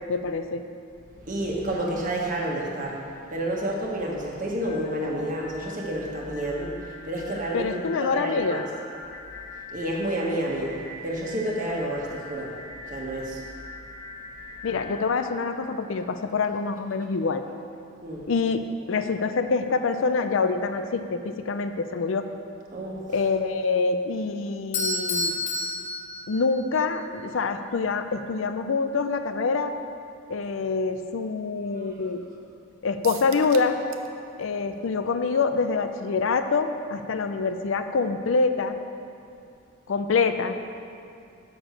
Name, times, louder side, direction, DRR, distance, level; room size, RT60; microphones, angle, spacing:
voice 1, 0.1-0.6 7.5-8.6 14.6-17.4 18.3-22.3 23.1-25.4 26.3-29.7 30.3-32.2 32.8-33.8 34.4-38.8 39.9-40.5, left 4 dB, 75° left, 8 dB, 0.5 m, -26 dB
voice 2, 1.2-8.6 9.7-12.6 12.9-13.4 18.0-18.2 22.7-23.0 31.8-31.9, right 1 dB, 40° right, -2 dB, 1.2 m, -30 dB
sound 1, 4.6-16.4, left 2 dB, ahead, 1.6 m, -43 dB
Bell / Doorbell, 24.7-26.8, left 2 dB, 35° left, 1.1 m, -29 dB
sound 2, 33.0-34.1 34.4-34.5 34.9-35.0, right 9 dB, 80° right, 0.5 m, -41 dB
6.6 x 6.1 x 6.3 m, 2.5 s
head